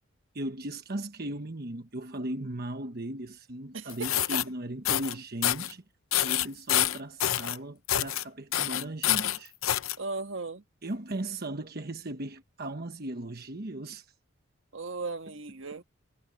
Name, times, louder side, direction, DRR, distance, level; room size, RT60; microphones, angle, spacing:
voice 1, 0.3-5.8 6.2-9.5 10.8-14.1, right 1 dB, 50° right, 1.2 m, -37 dB
voice 2, 3.7-4.1 10.0-10.6 14.7-15.8, right 3 dB, 65° right, 1.5 m, -36 dB
sound 1, 3.9-4.4 4.9-5.1 5.4-5.7 6.1-7.6 7.9-8.2 8.5-10.0, left 12 dB, 80° left, 0.7 m, -27 dB
head